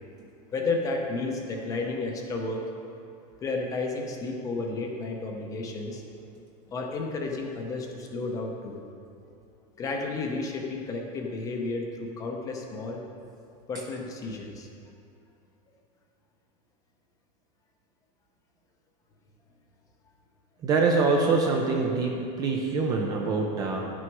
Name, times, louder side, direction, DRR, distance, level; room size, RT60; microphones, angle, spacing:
voice 1, 0.5-2.6 3.4-6.0 6.7-8.8 9.8-13.0 13.7-14.7, left 3 dB, 20° left, 1 dB, 0.7 m, -32 dB
voice 2, 20.6-23.9, right 4 dB, 20° right, 0 dB, 0.5 m, -25 dB
9.7 x 6.2 x 4.6 m, 2.5 s
supercardioid pair, 180°, 19 cm